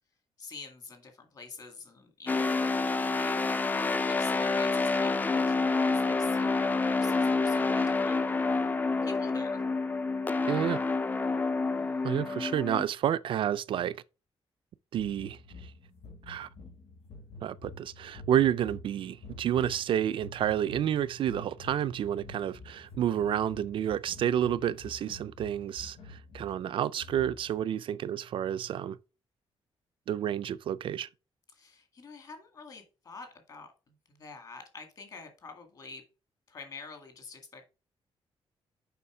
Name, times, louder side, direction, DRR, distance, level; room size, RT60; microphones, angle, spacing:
voice 1, 0.4-2.7 3.0-3.4 4.1-8.2 9.0-9.6 11.8-12.2 31.5-33.7 34.1-36.1 36.5-37.6, left 4 dB, 40° left, 2.0 m, -47 dB
sound 1, 2.3-12.8, left 3 dB, 15° left, 0.5 m, -28 dB
voice 2, 10.5-10.8 12.0-14.0 14.9-15.7 16.3-16.5 17.4-29.0 30.1-31.1, right 10 dB, 60° right, 0.4 m, -30 dB
sound 2, 15.0-27.6, left 2 dB, 85° left, 2.9 m, -48 dB
7.0 x 5.5 x 4.9 m
wide cardioid pair, 175°, 10 cm